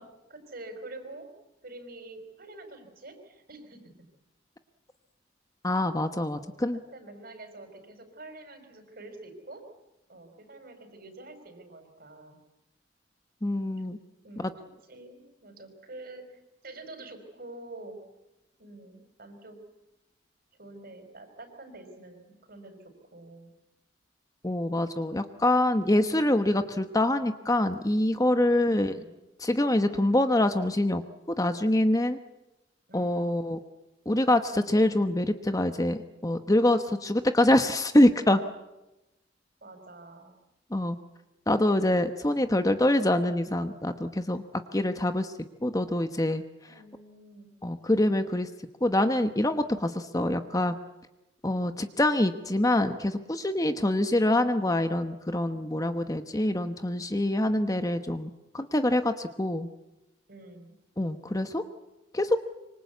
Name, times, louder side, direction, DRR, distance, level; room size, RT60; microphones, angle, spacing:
voice 1, 0.3-1.3 1.6-3.9 6.4-6.6 6.9-9.6 10.1-12.4 14.2-18.0 18.6-19.6 20.6-23.5 28.5-29.2 32.9-33.4 39.6-40.3 46.7-47.5 60.3-60.7, right 2 dB, 55° right, 7 dB, 5.1 m, -47 dB
voice 2, 5.6-6.8 13.4-14.0 14.4-14.5 24.4-29.0 29.4-31.0 31.4-32.2 32.9-33.6 34.1-38.4 40.7-41.0 41.5-44.4 44.7-45.3 45.6-46.4 47.6-48.5 48.8-50.8 51.4-59.7 61.0-61.6 62.1-62.4, left 1 dB, 20° left, 9 dB, 1.0 m, -25 dB
26.0 x 25.0 x 8.3 m, 0.97 s
head